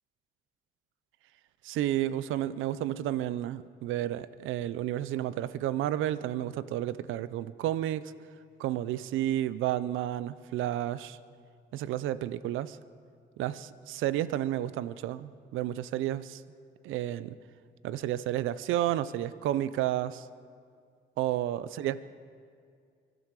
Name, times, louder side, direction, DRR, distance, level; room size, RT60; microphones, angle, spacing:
voice 1, 1.6-8.1 8.6-11.2 11.7-12.8 13.4-16.4 16.8-17.4 17.8-20.3 21.2-22.0, right 13 dB, 85° right, 16 dB, 0.6 m, -31 dB
24.0 x 12.0 x 4.7 m, 2.2 s
cardioid pair, 90°, 20 cm